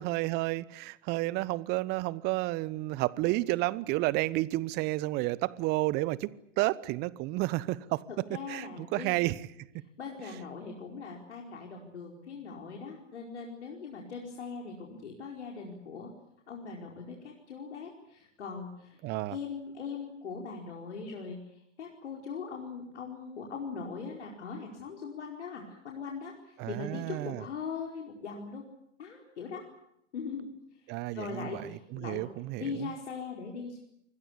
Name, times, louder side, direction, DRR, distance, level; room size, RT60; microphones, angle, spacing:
voice 1, 0.0-6.3 6.6-8.0 8.5-9.4 19.0-19.4 26.6-27.4 30.9-31.6 31.9-32.9, right 19 dB, 25° right, 0.9 m, -31 dB
voice 2, 8.1-9.1 10.0-16.1 16.5-19.0 19.3-28.6 29.0-29.6 30.1-30.5 31.1-32.2 32.6-33.9, left 5 dB, 65° left, 4.8 m, -40 dB
26.5 x 21.0 x 8.2 m
figure-of-eight pair, 110°, 37 cm